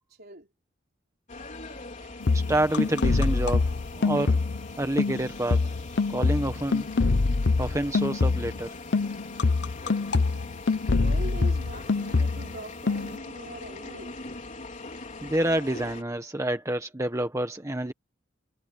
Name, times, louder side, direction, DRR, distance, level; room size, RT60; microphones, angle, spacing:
voice 1, 0.2-0.5 10.9-14.2, right 2 dB, 55° right, 4.2 m, -42 dB
sound 1, 1.3-16.0, left 3 dB, 40° left, 3.8 m, -42 dB
sound 2, 2.2-4.7 5.0-8.6 8.9-12.6 12.9-13.2, left 3 dB, 65° left, 0.8 m, -25 dB
voice 2, 2.3-4.4 4.8-5.6 6.1-6.9 7.6-8.7 15.2-17.9, right 1 dB, 15° right, 1.4 m, -28 dB
head